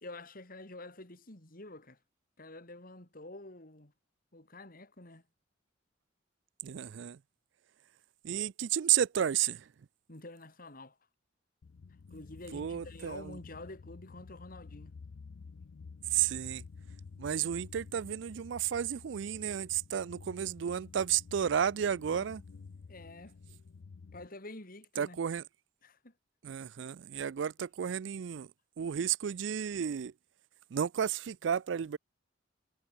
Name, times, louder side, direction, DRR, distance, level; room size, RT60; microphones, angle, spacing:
voice 1, 0.0-2.0 2.4-3.9 4.3-5.2 10.1-11.0 12.1-14.9 22.9-23.4 24.1-25.2 25.8-26.1, left 2 dB, 45° left, 3.1 m, -48 dB
voice 2, 6.6-7.2 8.2-9.6 12.5-13.3 16.1-16.6 17.2-22.4 25.0-25.4 26.4-28.5 28.8-30.1 30.7-32.0, right 9 dB, 70° right, 0.4 m, -32 dB
sound 1, 11.6-24.3, left 4 dB, 70° left, 0.5 m, -51 dB
head